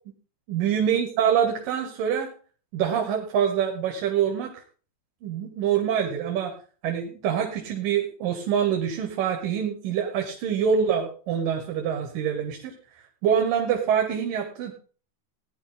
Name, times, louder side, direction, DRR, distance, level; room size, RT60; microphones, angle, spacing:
voice 1, 0.5-2.3 2.7-4.6 5.2-6.5 6.8-14.7, right 8 dB, 80° right, 4 dB, 3.1 m, -25 dB
17.0 x 10.0 x 3.9 m, 0.41 s
omnidirectional pair, 3.8 m